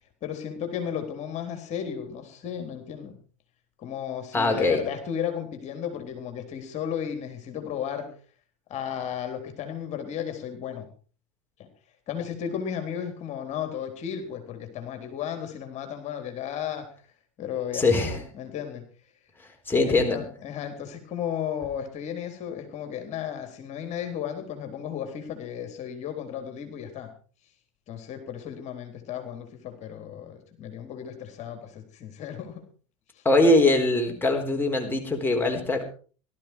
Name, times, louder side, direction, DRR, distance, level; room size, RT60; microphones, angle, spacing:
voice 1, 0.2-3.2 3.8-8.1 8.7-10.9 12.1-16.9 17.4-18.8 19.9-27.1 27.9-32.6, left 8 dB, 40° left, 5 dB, 4.0 m, -34 dB
voice 2, 4.3-4.8 17.7-18.2 19.7-20.2 33.2-35.8, left 2 dB, 10° left, 2 dB, 4.1 m, -22 dB
18.0 x 13.0 x 4.7 m, 0.39 s
hypercardioid pair, 80°, 17 cm